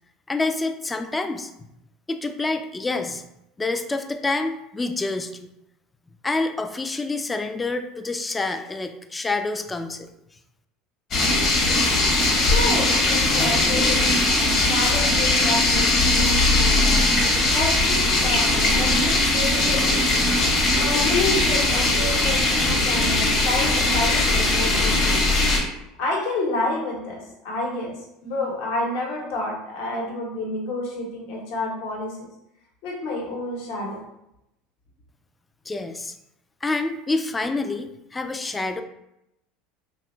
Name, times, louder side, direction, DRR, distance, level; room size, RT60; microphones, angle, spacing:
voice 1, 0.3-1.5 2.1-3.2 3.6-5.5 6.2-10.1 35.7-36.1 36.6-38.8, left 3 dB, 15° left, 7 dB, 0.3 m, -27 dB
sound 1, 11.1-25.6, left 2 dB, 50° left, 1.1 m, -20 dB
voice 2, 12.4-20.0 20.8-25.7 26.0-28.0 28.2-32.1 32.8-34.0, left 2 dB, 70° left, -2 dB, 1.0 m, -29 dB
3.0 x 2.3 x 3.0 m, 0.84 s
hypercardioid pair, 80°, 0 cm